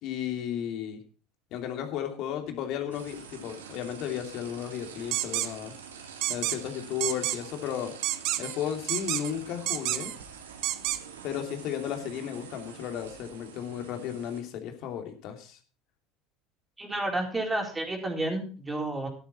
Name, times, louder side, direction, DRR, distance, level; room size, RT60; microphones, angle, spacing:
voice 1, 0.0-1.0 1.5-5.7 6.3-7.9 8.4-10.1 11.2-15.6, left 9 dB, 55° left, 5 dB, 2.8 m, -34 dB
sound 1, 2.9-14.4, right 7 dB, 80° right, 2.2 m, -46 dB
sound 2, 5.1-5.5 6.2-6.6 7.0-7.4 8.0-8.6 8.9-9.3 9.7-10.2 10.6-11.0, right 15 dB, 55° right, 1.0 m, -29 dB
voice 2, 16.8-19.1, right 2 dB, 15° right, 1 dB, 4.1 m, -31 dB
12.5 x 11.5 x 4.3 m, 0.37 s
hypercardioid pair, 75°, 0 cm